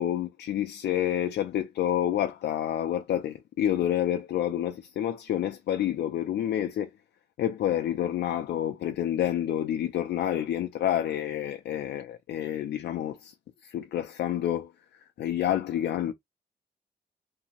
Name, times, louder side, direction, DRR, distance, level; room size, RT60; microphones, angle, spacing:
voice 1, 0.0-6.9 7.4-13.3 13.6-14.7 15.2-16.1, left 11 dB, 90° left, 0.4 m, -28 dB
2.7 x 2.6 x 2.9 m
wide cardioid pair, 180°, 17 cm